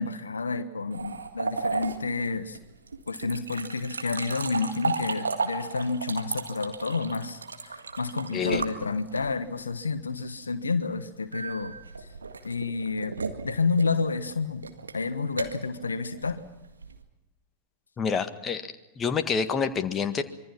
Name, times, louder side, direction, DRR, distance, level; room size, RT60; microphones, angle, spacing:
voice 1, 0.0-2.6 3.1-11.7 12.0-12.1 12.4-13.2 13.4-14.6 14.9-16.4, left 4 dB, 75° left, 11 dB, 1.2 m, -30 dB
sound 1, 0.9-9.5 11.3-17.0, right 4 dB, 75° right, 1.8 m, -34 dB
voice 2, 18.0-18.6 19.0-20.2, left 6 dB, 25° left, 7 dB, 1.7 m, -27 dB
25.5 x 24.0 x 5.9 m, 0.98 s
figure-of-eight pair, 90°, 0 cm